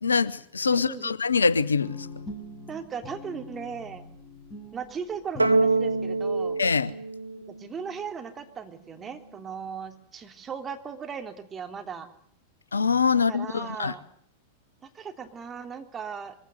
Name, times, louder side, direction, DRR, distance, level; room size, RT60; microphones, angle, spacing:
voice 1, 0.0-2.1 6.6-6.9 12.7-13.9, left 5 dB, 75° left, 0.9 m, -24 dB
voice 2, 0.7-1.1 2.7-4.1 4.7-6.6 7.4-12.1 13.3-14.0 14.8-16.3, right 6 dB, 20° right, 3.4 m, -37 dB
Guitar, 1.8-7.0, left 3 dB, 20° left, 6.6 m, -43 dB
sound 1, 5.4-8.0, right 3 dB, 85° right, 0.9 m, -25 dB
24.5 x 16.5 x 9.4 m
figure-of-eight pair, 90°, 0 cm